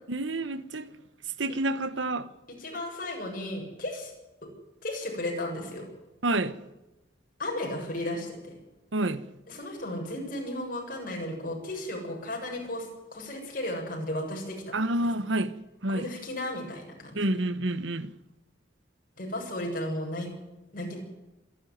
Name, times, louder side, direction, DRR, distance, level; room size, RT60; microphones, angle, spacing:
voice 1, 0.1-0.9 1.4-2.3 6.2-6.6 8.9-9.2 14.7-15.6 15.8-16.1 17.1-18.1, right 1 dB, 85° right, 1.2 m, -28 dB
voice 2, 2.6-4.1 4.8-5.9 7.4-8.5 9.5-14.8 15.9-17.2 19.2-20.3 20.7-21.0, left 1 dB, 50° left, 7.4 m, -34 dB
26.0 x 12.0 x 9.4 m
head